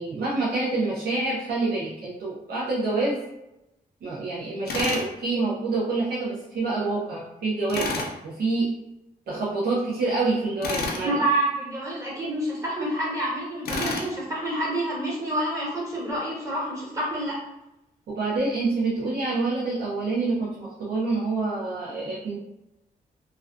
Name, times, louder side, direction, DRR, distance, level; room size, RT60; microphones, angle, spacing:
voice 1, 0.0-3.2 4.0-8.7 9.3-11.2 18.1-22.4, right 3 dB, 90° right, -7 dB, 0.6 m, -27 dB
Tools, 4.7-5.1 7.7-8.1 10.6-11.1 13.7-14.1, left 3 dB, 90° left, 0.4 m, -29 dB
voice 2, 11.0-17.3, right 1 dB, 20° right, -6 dB, 1.2 m, -28 dB
2.3 x 2.3 x 2.4 m, 0.90 s
cardioid pair, 85°, 16 cm